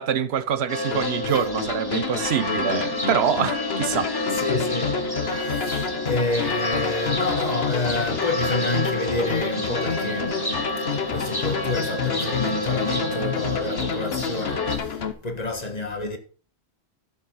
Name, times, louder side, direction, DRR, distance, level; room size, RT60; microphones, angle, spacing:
voice 1, 0.0-4.1, right 8 dB, 85° right, 1.0 m, -25 dB
sound 1, 0.7-14.8, left 1 dB, 20° left, 1.4 m, -29 dB
sound 2, 0.9-15.1, left 6 dB, 75° left, 1.3 m, -29 dB
voice 2, 4.3-16.2, left 2 dB, 40° left, 1.5 m, -29 dB
11.5 x 7.1 x 5.2 m
omnidirectional pair, 1.1 m